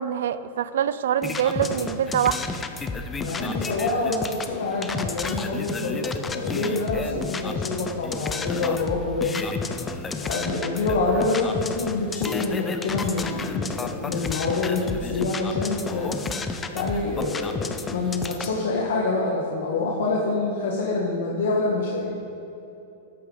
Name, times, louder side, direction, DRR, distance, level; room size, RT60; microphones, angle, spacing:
voice 1, 0.0-2.4, right 9 dB, 80° right, 15 dB, 0.5 m, -24 dB
sound 1, 1.2-18.6, left 4 dB, 15° left, 0.6 m, -31 dB
voice 2, 3.2-9.4 10.2-16.2 16.7-22.1, left 3 dB, 80° left, -2 dB, 1.5 m, -26 dB
13.5 x 9.0 x 3.9 m, 2.9 s
supercardioid pair, 140°, 0 cm